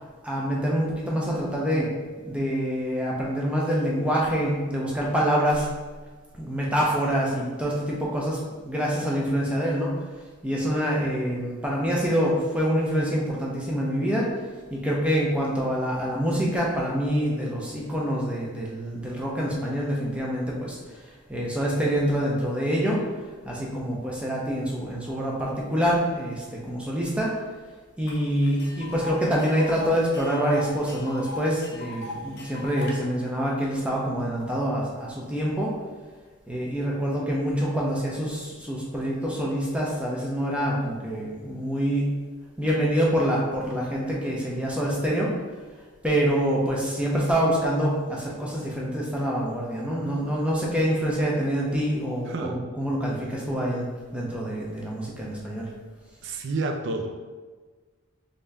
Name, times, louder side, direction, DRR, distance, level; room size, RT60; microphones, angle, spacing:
voice 1, 0.2-1.9 2.2-5.7 6.4-10.0 10.4-14.3 14.7-20.8 21.3-23.0 23.4-27.3 28.0-35.7 36.5-42.1 42.6-45.3 46.0-55.7, equal, 5° right, -4 dB, 0.6 m, -26 dB
Tick, 28.1-28.2 28.4-32.9, left 1 dB, 50° left, 0.7 m, -38 dB
voice 2, 52.3-52.6 56.2-57.2, right 3 dB, 55° right, 5 dB, 0.4 m, -30 dB
3.4 x 2.7 x 3.3 m, 1.4 s
head